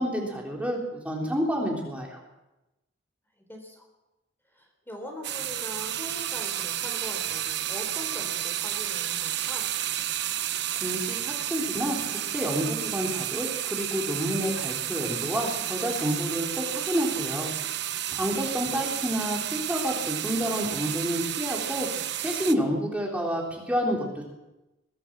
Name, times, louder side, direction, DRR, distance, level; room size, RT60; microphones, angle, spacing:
voice 1, 0.0-2.2 10.8-12.0 12.3-17.5 18.1-21.9 22.2-24.3, equal, 5° right, -1 dB, 3.7 m, -29 dB
voice 2, 3.5-3.9 4.5-9.7 18.6-19.0, equal, 10° left, 3 dB, 3.7 m, -41 dB
sound 1, 5.2-22.5, right 12 dB, 60° right, 1.0 m, -31 dB
22.0 x 16.0 x 7.5 m, 1.0 s
head